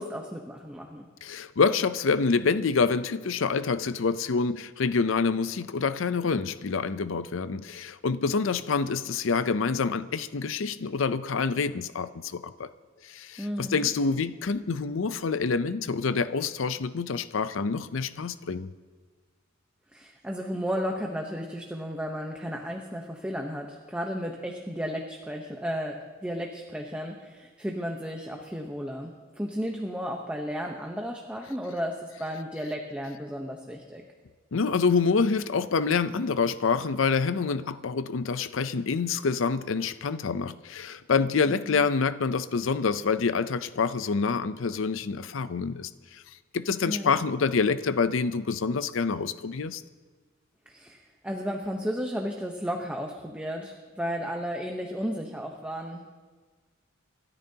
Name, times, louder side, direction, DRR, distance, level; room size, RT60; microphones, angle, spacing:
voice 1, 0.0-1.1 13.4-13.9 19.9-34.0 41.5-41.8 46.8-47.2 50.7-56.1, equal, 5° right, 1 dB, 0.9 m, -34 dB
voice 2, 1.2-12.7 13.0-18.7 34.5-46.2 46.5-49.8, left 5 dB, 70° left, 14 dB, 0.5 m, -27 dB
27.5 x 13.0 x 2.9 m, 1.4 s
head